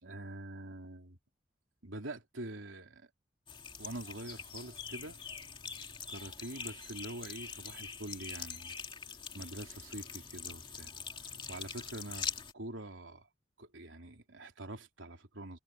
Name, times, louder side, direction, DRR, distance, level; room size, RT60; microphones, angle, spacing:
voice 1, 0.0-1.2 1.8-3.1 3.8-5.2 6.1-8.8 9.3-10.9 11.2-13.3 13.6-15.6, right 1 dB, 85° right, 3.5 m, -45 dB
sound 1, 3.5-12.5, left 6 dB, 25° left, 2.6 m, -44 dB
head